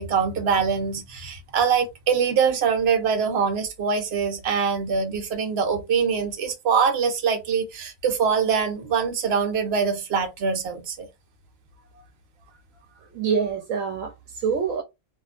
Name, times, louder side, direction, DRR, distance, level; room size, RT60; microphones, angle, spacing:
voice 1, 0.0-11.1, right 6 dB, 55° right, 0.9 m, -23 dB
voice 2, 13.1-14.8, right 6 dB, 80° right, 1.0 m, -26 dB
2.7 x 2.3 x 2.3 m
omnidirectional pair, 1.4 m